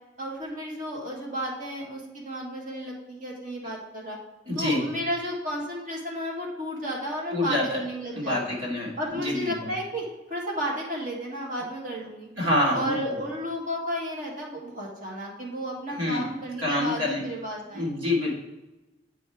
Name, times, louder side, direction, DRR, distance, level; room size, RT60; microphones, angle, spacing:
voice 1, 0.2-4.2 4.5-8.6 9.0-12.3 12.7-18.0, equal, 45° right, -2 dB, 1.6 m, -33 dB
voice 2, 4.5-4.8 7.3-7.6 8.1-9.5 12.4-13.2 16.0-16.2 16.6-17.2 17.7-18.3, left 1 dB, 80° right, -4 dB, 2.8 m, -26 dB
8.1 x 4.2 x 4.6 m, 1.1 s
head